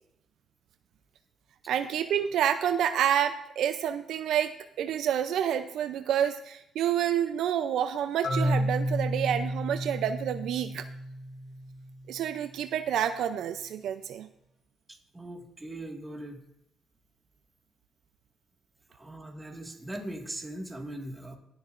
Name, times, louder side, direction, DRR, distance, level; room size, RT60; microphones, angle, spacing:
voice 1, 1.7-4.5 4.8-10.8 12.1-14.3, right 9 dB, 75° right, 10 dB, 0.5 m, -28 dB
Marimba xylophone, 8.2-12.1, equal, 65° left, 3.6 m, -31 dB
voice 2, 15.1-16.4 18.9-21.4, right 1 dB, 15° right, 3 dB, 1.8 m, -40 dB
19.0 x 7.1 x 2.5 m, 0.81 s
cardioid pair, 90°, 0 cm